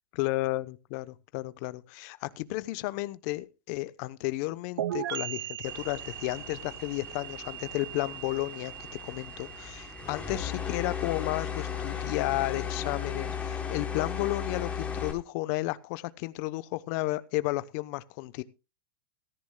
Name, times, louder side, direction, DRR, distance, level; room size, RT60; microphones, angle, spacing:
voice 1, 0.1-8.7 9.0-18.4, left 19 dB, 50° left, 15 dB, 0.9 m, -33 dB
sound 1, 4.8-12.3, right 12 dB, 85° right, 0.7 m, -40 dB
sound 2, 5.6-15.1, left 7 dB, 10° left, 3.2 m, -36 dB
17.0 x 14.5 x 2.3 m, 0.29 s
supercardioid pair, 140°, 11 cm